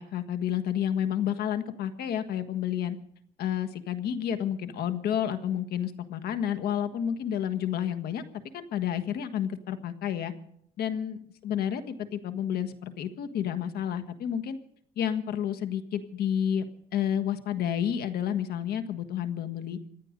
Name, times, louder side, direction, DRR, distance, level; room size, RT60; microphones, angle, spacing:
voice 1, 0.0-3.0 3.4-8.2 8.5-10.3 10.8-14.6 15.0-16.7 16.9-19.8, left 9 dB, 70° left, 9 dB, 1.6 m, -30 dB
26.5 x 9.8 x 5.2 m, 0.68 s
cardioid pair, 110°, 17 cm